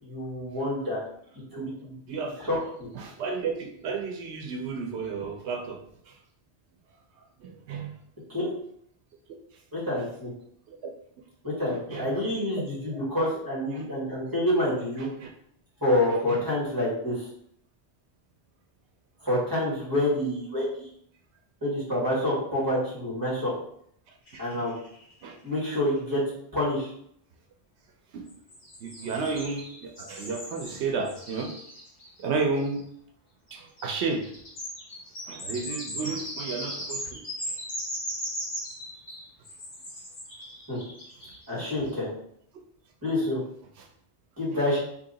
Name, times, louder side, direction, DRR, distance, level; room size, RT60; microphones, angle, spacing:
voice 1, 0.0-1.0 1.5-1.9 2.4-2.9 8.3-8.5 9.7-10.3 11.4-15.1 15.8-17.2 19.2-20.9 21.6-23.5 24.4-24.7 25.4-26.2 26.5-26.9 40.7-40.8 41.5-42.1 43.0-43.4 44.4-44.8, left 1 dB, 20° right, -7 dB, 1.5 m, -27 dB
voice 2, 2.1-2.4 2.9-5.8 6.1-6.2 7.4-8.0 10.7-10.9 11.7-12.2 12.6-13.0 13.7-13.9 15.0-15.3 16.1-16.4 24.3-24.6 25.2-25.4 28.1-28.2 28.8-31.5 32.2-32.8 33.5-34.3 35.3-37.5 42.5-42.6 43.8-43.9 44.5-44.6, right 4 dB, 85° right, 3 dB, 0.9 m, -33 dB
sound 1, 24.3-25.3 25.7-25.8 26.0-26.1 28.3-32.8 33.5-41.7, equal, 50° left, 1.4 m, -38 dB
2.8 x 2.7 x 3.9 m, 0.68 s
omnidirectional pair, 1.1 m